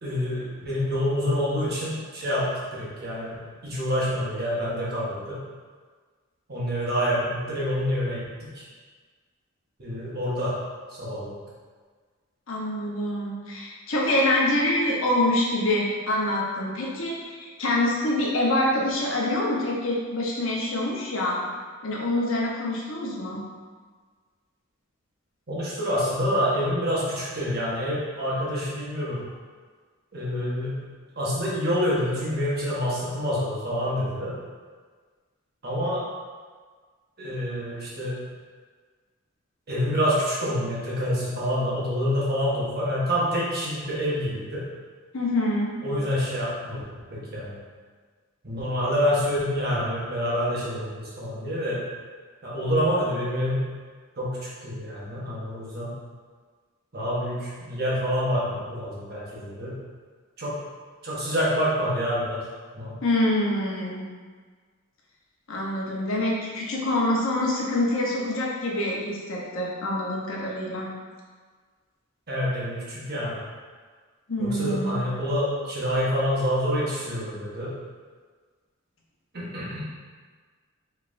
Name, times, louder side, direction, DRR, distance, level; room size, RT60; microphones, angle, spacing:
voice 1, 0.0-3.4 3.6-5.4 6.5-8.2 8.5-8.7 9.8-10.5 10.9-11.3 25.5-29.2 30.1-30.8 31.2-34.3 35.6-36.0 37.2-38.1 39.7-44.6 45.8-46.8 47.1-47.6 48.4-51.8 52.4-53.6 54.2-55.9 56.9-59.8 60.4-60.5 61.0-62.4 62.7-62.9 72.3-73.4 74.4-77.7 79.3-79.8, equal, 45° right, -7 dB, 1.2 m, -27 dB
voice 2, 12.5-21.4 21.8-23.4 45.1-45.7 63.0-64.0 65.5-70.9 74.3-75.0, left 1 dB, 65° left, -3 dB, 0.8 m, -25 dB
5.3 x 3.3 x 2.5 m, 1.5 s
head